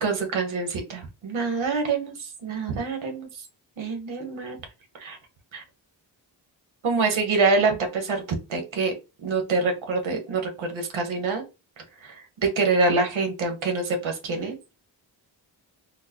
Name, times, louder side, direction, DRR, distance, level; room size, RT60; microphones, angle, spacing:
voice 1, 0.0-3.3 3.8-4.6 5.0-5.2 5.5-5.6 6.8-8.2 8.5-8.9 9.2-11.4 12.0-12.2 12.4-14.6, right 3 dB, 90° right, 4 dB, 1.1 m, -25 dB
4.4 x 2.0 x 2.8 m, 0.28 s
wide cardioid pair, 125°, 46 cm